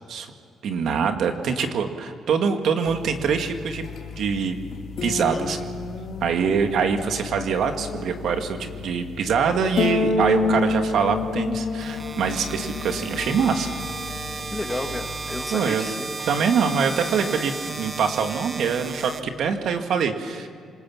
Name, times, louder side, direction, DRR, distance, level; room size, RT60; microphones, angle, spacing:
voice 1, 0.6-3.8 4.2-4.6 5.0-5.6 6.2-13.7 15.5-15.9 16.3-20.5, right 6 dB, 70° right, 6 dB, 2.2 m, -24 dB
sound 1, 2.9-15.4, left 4 dB, 65° left, 2.5 m, -30 dB
voice 2, 5.3-5.6 14.5-16.1, left 2 dB, 15° left, 5 dB, 2.2 m, -32 dB
sound 2, 11.8-19.8, right 3 dB, 35° right, 1.5 m, -34 dB
28.5 x 26.0 x 7.4 m, 2.3 s
cardioid pair, 90°, 0 cm